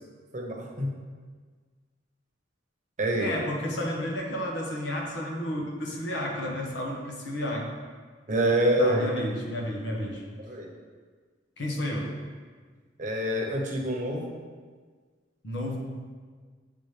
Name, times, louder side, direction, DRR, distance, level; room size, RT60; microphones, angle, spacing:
voice 1, 0.3-0.9 3.0-3.4 8.3-9.1 10.4-10.7 13.0-14.3, right 1 dB, 40° right, 0 dB, 0.9 m, -26 dB
voice 2, 3.2-7.6 8.8-10.2 11.6-12.1 15.4-15.8, left 1 dB, 75° left, -1 dB, 1.3 m, -31 dB
9.1 x 3.7 x 3.3 m, 1.5 s
head